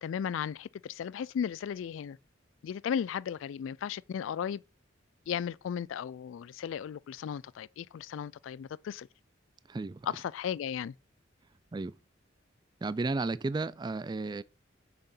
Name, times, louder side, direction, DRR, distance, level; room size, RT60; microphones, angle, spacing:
voice 1, 0.0-2.2 2.6-4.6 5.3-9.1 10.0-10.9, left 8 dB, 85° left, 0.3 m, -35 dB
voice 2, 9.7-10.0 11.7-11.9 12.8-14.4, right 3 dB, 20° right, 0.3 m, -33 dB
6.6 x 6.0 x 5.6 m
head